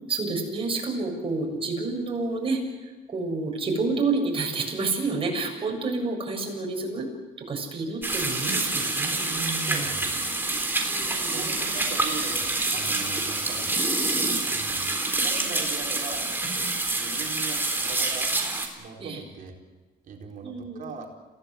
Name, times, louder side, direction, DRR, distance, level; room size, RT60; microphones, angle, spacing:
voice 1, 0.0-7.1 7.4-9.9 10.9-11.5 19.0-19.2 20.4-21.0, right 3 dB, 30° right, 0 dB, 7.7 m, -29 dB
sound 1, 8.0-18.7, right 2 dB, 10° right, 4.2 m, -27 dB
voice 2, 9.5-10.3 11.2-13.7 14.4-14.9 15.2-16.3 16.9-18.3 18.8-19.5 20.0-21.1, right 5 dB, 50° right, 1 dB, 4.6 m, -40 dB
27.5 x 17.0 x 8.3 m, 1.2 s
cardioid pair, 110°, 17 cm